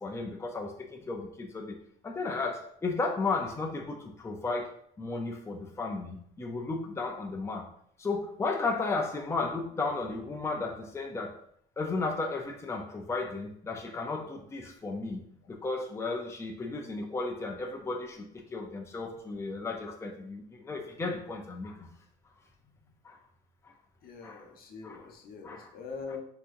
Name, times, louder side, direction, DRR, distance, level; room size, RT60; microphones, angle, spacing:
voice 1, 0.0-1.8 2.0-7.7 8.0-11.3 11.8-15.2 15.5-21.9 23.0-23.2 24.2-24.4 24.8-25.1 25.4-25.7 26.1-26.2, left 3 dB, 15° left, 2 dB, 0.6 m, -34 dB
voice 2, 24.0-26.2, left 5 dB, 60° left, 2 dB, 0.9 m, -43 dB
6.1 x 2.9 x 2.6 m, 0.66 s
cardioid pair, 110°, 17 cm